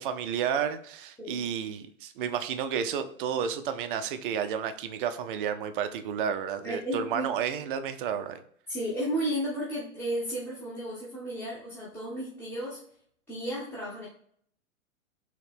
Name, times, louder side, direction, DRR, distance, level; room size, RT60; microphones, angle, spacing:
voice 1, 0.0-8.4, right 8 dB, 40° right, 10 dB, 0.5 m, -31 dB
voice 2, 6.6-7.3 8.7-12.8 13.3-14.1, equal, 5° left, -8 dB, 1.0 m, -33 dB
4.3 x 3.1 x 3.3 m, 0.62 s
figure-of-eight pair, 105°, 42 cm